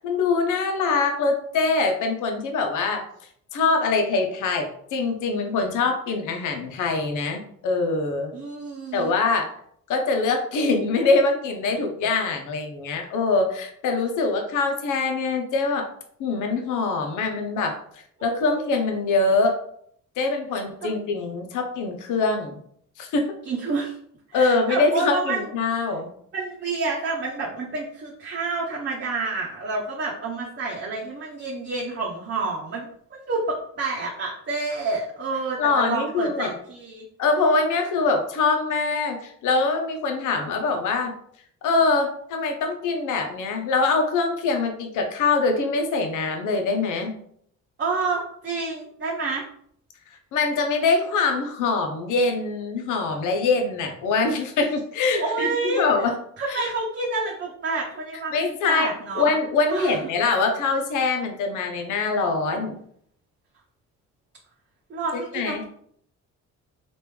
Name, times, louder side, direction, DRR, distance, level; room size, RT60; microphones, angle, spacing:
voice 1, 0.0-3.0 3.5-8.3 8.9-9.5 9.9-15.9 16.2-17.8 18.2-19.6 20.2-22.6 23.0-23.3 24.3-26.1 35.6-36.5 37.2-41.1 41.6-47.2 50.3-56.1 56.5-56.6 58.3-62.8 65.1-65.6, left 3 dB, 80° left, 4 dB, 0.8 m, -23 dB
voice 2, 8.3-9.2 18.2-18.7 20.8-20.9 23.5-23.9 24.3-25.5 26.3-37.0 47.8-49.4 55.2-56.1 56.4-59.3 59.7-60.1 64.9-65.6, right 3 dB, 40° right, -3 dB, 0.8 m, -29 dB
3.0 x 2.5 x 3.4 m, 0.65 s
cardioid pair, 90°, 30 cm